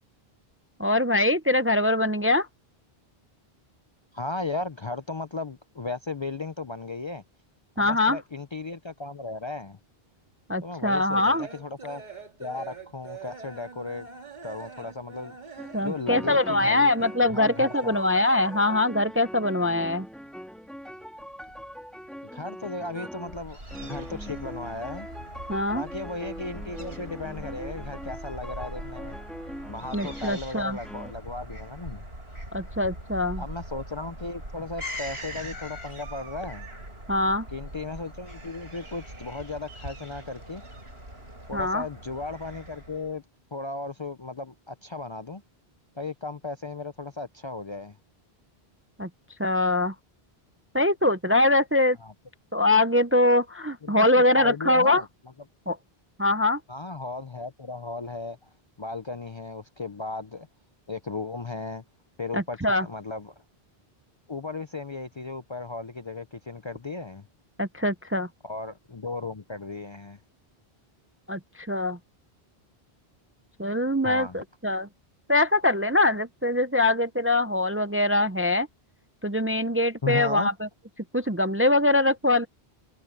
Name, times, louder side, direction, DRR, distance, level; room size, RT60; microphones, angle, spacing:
voice 1, 0.8-2.5 7.8-8.2 10.5-11.5 15.7-20.1 25.5-25.8 29.9-30.8 32.5-33.4 37.1-37.5 41.5-41.9 49.0-49.1 49.4-49.9 50.7-52.0 52.5-55.0 55.7-55.8 56.2-56.6 62.3-62.9 67.6-68.3 71.3-72.0 73.6-74.9 75.3-78.7 79.2-80.7 81.1-82.5, left 2 dB, 15° right, 0.5 m, -23 dB
voice 2, 4.1-7.2 7.8-9.8 10.6-12.0 12.4-14.1 14.4-16.9 17.3-18.0 22.3-25.1 25.7-29.2 29.7-32.1 33.4-36.7 37.5-40.6 41.5-43.2 43.5-45.4 46.0-48.0 52.0-52.1 53.8-55.1 56.7-58.5 58.8-60.5 60.9-61.8 62.2-63.3 64.3-67.3 68.4-70.2 74.0-74.4 80.0-80.5, left 3 dB, 35° left, 0.5 m, -36 dB
sound 1, 10.2-19.0 19.3-20.5 20.8-22.1 22.4-23.1, right 4 dB, 45° right, 2.0 m, -45 dB
sound 2, 15.6-15.8 16.1-30.5 30.8-31.1, equal, ahead, 3.5 m, -41 dB
Fowl / Gull seagull, 23.3-43.2, right 1 dB, 85° right, 8.5 m, -41 dB
omnidirectional pair, 1.0 m